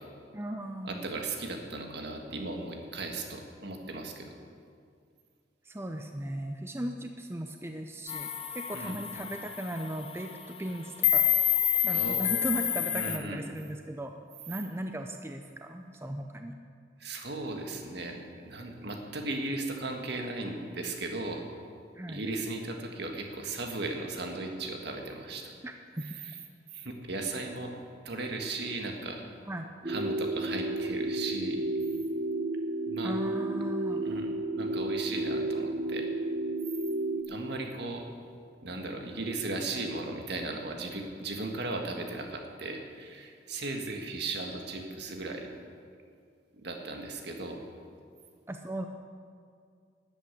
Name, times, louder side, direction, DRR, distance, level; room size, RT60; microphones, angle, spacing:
voice 1, 0.3-1.2 5.6-11.2 11.8-14.1 14.5-16.6 21.9-22.2 25.6-26.0 29.5-29.7 33.0-34.1 48.5-48.9, right 1 dB, 15° right, 4 dB, 0.5 m, -37 dB
voice 2, 0.8-4.3 8.7-9.0 11.9-12.4 12.9-13.4 17.0-21.5 22.1-25.5 26.2-26.3 26.7-27.7 28.1-29.2 29.9-31.6 32.9-33.2 34.0-36.1 37.3-38.1 38.6-45.5 46.6-47.6, right 2 dB, 60° right, 3 dB, 1.7 m, -36 dB
sound 1, 8.1-13.2, left 10 dB, 30° left, 0.7 m, -28 dB
sound 2, 29.8-37.2, right 2 dB, 35° right, 1.1 m, -32 dB
12.5 x 8.6 x 8.3 m, 2.2 s
head